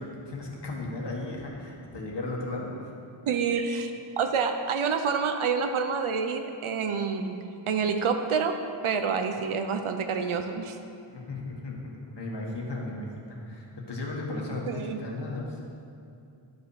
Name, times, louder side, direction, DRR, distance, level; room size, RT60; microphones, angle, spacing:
voice 1, 0.0-2.9 11.1-15.6, left 2 dB, 55° left, -2 dB, 1.7 m, -35 dB
voice 2, 3.3-7.4 7.7-10.8 14.7-15.0, right 5 dB, 75° right, 6 dB, 0.7 m, -28 dB
11.5 x 5.4 x 4.9 m, 2.5 s
wide cardioid pair, 105°, 50 cm